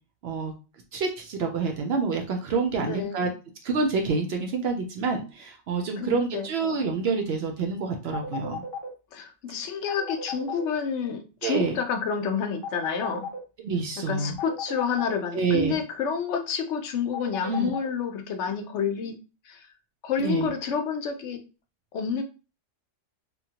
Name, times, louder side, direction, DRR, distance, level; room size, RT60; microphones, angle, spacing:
voice 1, 0.2-0.5 0.9-3.3 3.6-8.6 11.4-11.8 13.6-14.4 15.3-15.8 17.4-17.7 20.2-20.5, right 4 dB, 65° right, 3 dB, 0.7 m, -27 dB
voice 2, 2.8-3.3 6.0-6.5 9.1-13.3 14.0-19.1 19.5-19.7 20.0-21.4 21.9-22.2, left 6 dB, 70° left, 5 dB, 0.9 m, -29 dB
sound 1, 8.1-8.9 9.9-10.6 12.6-13.4 14.4-15.1 17.1-17.9, left 4 dB, 35° left, 0.4 m, -34 dB
3.0 x 2.1 x 2.8 m, 0.32 s
omnidirectional pair, 1.3 m